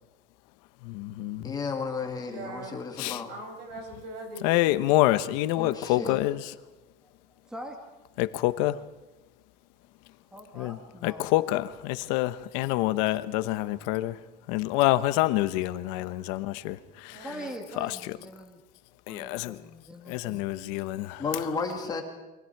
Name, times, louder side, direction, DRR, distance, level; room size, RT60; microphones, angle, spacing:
voice 1, 0.8-1.5 3.0-3.2 4.4-6.3 8.2-8.8 10.6-10.8 11.0-14.2 14.5-16.8 17.0-17.2 17.8-17.9 19.1-19.6 20.1-21.0, left 16 dB, 75° left, 1.0 m, -26 dB
voice 2, 1.4-3.3 5.5-6.2 21.2-22.0, left 5 dB, 20° left, 2.2 m, -33 dB
voice 3, 2.3-2.8 3.3-4.5 17.1-17.9, right 2 dB, 50° right, 5.5 m, -41 dB
voice 4, 7.4-7.8 10.3-11.3 17.2-18.6 19.1-20.4, equal, 5° right, 1.9 m, -42 dB
29.0 x 24.0 x 4.7 m
cardioid pair, 175°, 21 cm